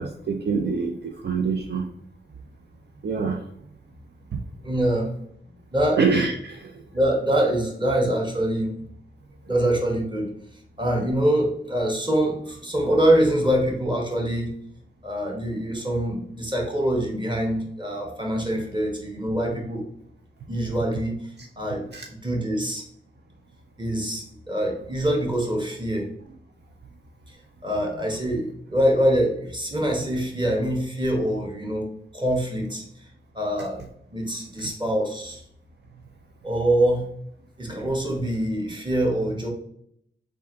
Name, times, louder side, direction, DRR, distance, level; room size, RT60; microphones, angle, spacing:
voice 1, 0.0-1.9 3.0-3.5 4.3-4.4 6.0-6.8 21.9-22.0, right 4 dB, 60° right, 2 dB, 0.5 m, -25 dB
voice 2, 4.6-5.1 5.7-6.0 6.9-8.7 9.5-10.3 10.8-14.5 15.0-19.9 20.5-22.8 23.8-26.1 27.3-27.4 27.6-32.8 33.3-33.8 34.1-35.4 36.4-37.1 37.6-39.5, right 1 dB, 25° right, 1 dB, 1.4 m, -24 dB
3.4 x 2.6 x 4.5 m, 0.69 s
cardioid pair, 50°, 20 cm